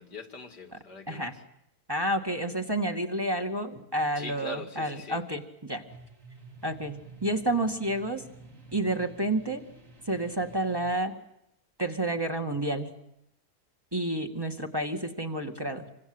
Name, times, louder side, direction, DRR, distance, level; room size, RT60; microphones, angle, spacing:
voice 1, 0.0-1.4 4.1-5.2, left 3 dB, 85° left, 6 dB, 3.4 m, -42 dB
voice 2, 1.9-5.8 6.6-8.2 8.7-9.6 10.1-11.1 11.8-12.9 13.9-15.8, right 1 dB, 15° right, 4 dB, 2.2 m, -30 dB
sound 1, 5.9-11.0, right 3 dB, 50° right, 3.8 m, -51 dB
27.5 x 26.0 x 8.1 m, 0.82 s
omnidirectional pair, 1.7 m